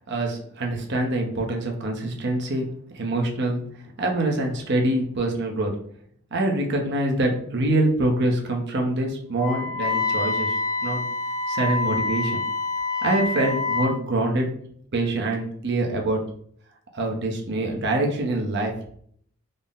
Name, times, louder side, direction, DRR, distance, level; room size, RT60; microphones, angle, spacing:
voice 1, 0.1-2.7 2.9-3.6 4.0-5.8 6.3-11.0 11.5-12.4 13.0-14.5 14.9-16.2 16.9-18.7, right 1 dB, 50° right, 1 dB, 0.7 m, -25 dB
Wind instrument woodwind instrument, 9.4-14.0, left 3 dB, 15° left, 0.5 m, -26 dB
3.8 x 2.0 x 3.7 m, 0.62 s
head